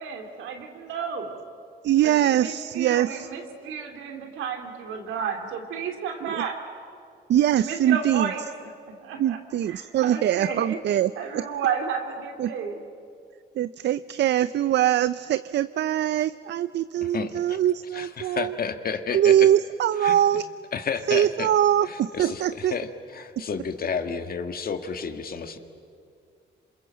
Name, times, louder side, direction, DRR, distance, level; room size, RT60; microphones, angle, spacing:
voice 1, 0.0-1.3 2.0-6.6 7.5-8.7 9.0-9.4 9.7-10.8 11.2-12.8, right 6 dB, 90° right, 4 dB, 3.1 m, -32 dB
voice 2, 1.8-3.3 6.2-6.4 7.3-8.3 9.2-11.4 12.4-12.5 13.6-18.5 19.1-20.5 21.1-22.8, right 11 dB, 60° right, 15 dB, 0.6 m, -23 dB
voice 3, 17.0-17.6 17.9-19.5 20.0-20.2 20.7-21.5 21.8-25.6, left 6 dB, 50° left, 7 dB, 2.0 m, -31 dB
27.0 x 27.0 x 7.6 m, 2.4 s
cardioid pair, 90°, 20 cm